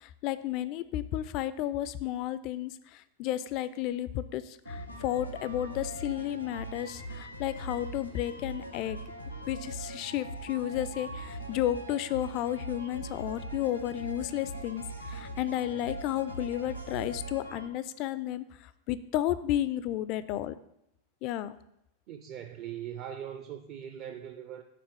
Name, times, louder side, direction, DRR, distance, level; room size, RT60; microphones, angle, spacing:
voice 1, 0.0-2.7 3.2-4.4 4.7-9.0 9.5-14.8 15.1-18.4 18.9-20.5 21.2-21.5, left 12 dB, 40° left, 14 dB, 0.4 m, -32 dB
sound 1, 4.7-17.7, right 1 dB, 90° left, 1.1 m, -41 dB
voice 2, 22.1-24.6, right 9 dB, 40° right, 6 dB, 0.5 m, -41 dB
5.9 x 4.0 x 6.2 m, 0.80 s
figure-of-eight pair, 90°, 0 cm